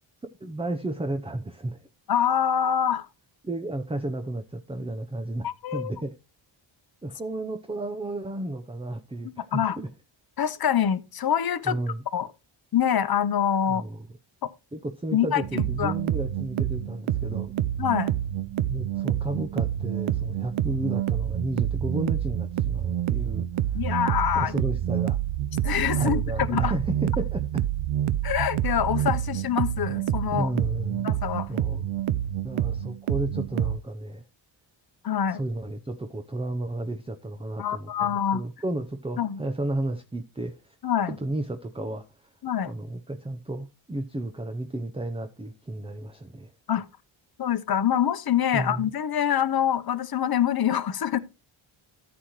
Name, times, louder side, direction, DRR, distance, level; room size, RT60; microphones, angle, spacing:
voice 1, 0.4-1.8 3.4-5.5 5.7-6.1 7.0-9.9 11.6-12.0 13.7-14.1 14.7-17.5 18.7-23.8 24.3-25.2 25.9-27.6 30.3-31.1 31.5-31.9 32.4-34.2 35.3-40.8 41.1-42.0 42.7-46.5 48.5-48.9, right 1 dB, 10° right, 0.7 m, -32 dB
voice 2, 2.1-3.1 5.4-5.9 9.2-9.8 10.4-11.8 12.1-12.3 12.7-13.8 14.4-14.5 15.1-15.9 17.8-18.1 23.7-24.5 25.6-26.2 26.5-26.7 28.2-30.5 31.0-31.5 35.0-35.4 37.6-38.4 39.2-39.4 40.8-41.2 42.4-42.7 46.7-46.9 47.4-51.2, left 9 dB, 45° left, 0.9 m, -25 dB
sound 1, 15.4-33.8, right 11 dB, 75° right, 0.7 m, -28 dB
14.0 x 8.0 x 3.1 m
wide cardioid pair, 145°, 50 cm